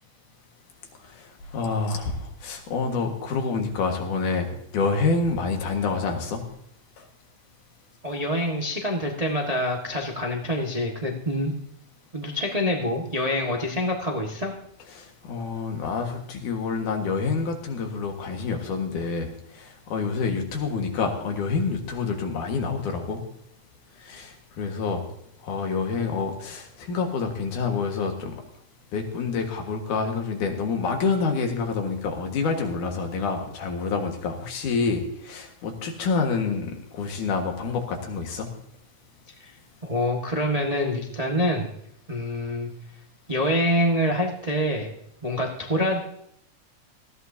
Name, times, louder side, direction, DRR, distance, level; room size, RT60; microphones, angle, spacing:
voice 1, 1.0-6.4 7.0-7.1 14.9-23.2 24.0-25.1 25.4-28.4 28.9-38.5, left 4 dB, 80° left, 3 dB, 3.2 m, -27 dB
voice 2, 8.0-11.5 12.1-14.5 39.8-41.7 42.1-42.7 43.3-44.9 45.2-46.0, equal, 35° right, 0 dB, 0.6 m, -26 dB
19.0 x 14.0 x 2.7 m, 0.73 s
omnidirectional pair, 3.5 m